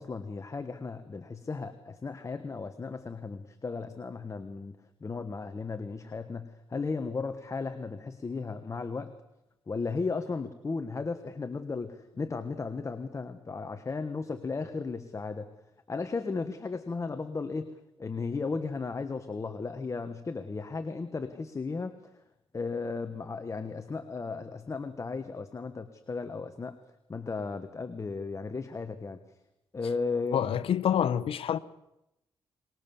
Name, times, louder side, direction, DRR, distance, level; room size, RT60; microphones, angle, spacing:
voice 1, 0.0-4.7 5.0-9.1 9.7-15.5 15.9-17.7 18.0-22.0 22.5-26.8 27.1-29.2 29.7-30.4, left 4 dB, 30° left, 1.4 m, -35 dB
voice 2, 30.3-31.6, left 9 dB, 80° left, 1.0 m, -27 dB
24.0 x 21.0 x 7.1 m
cardioid pair, 100°, 10 cm